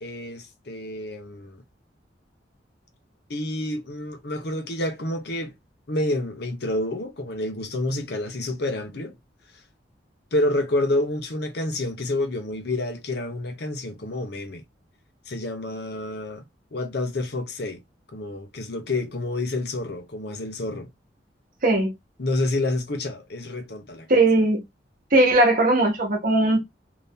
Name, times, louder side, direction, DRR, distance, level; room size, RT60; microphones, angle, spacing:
voice 1, 0.0-1.6 3.3-5.5 5.9-9.2 10.3-14.6 15.3-16.4 16.7-17.8 18.1-20.9 22.2-24.1, left 1 dB, 65° left, 0.8 m, -28 dB
voice 2, 21.6-21.9 24.1-24.6 25.1-26.6, right 2 dB, 50° right, 1.1 m, -19 dB
2.9 x 2.7 x 3.5 m
head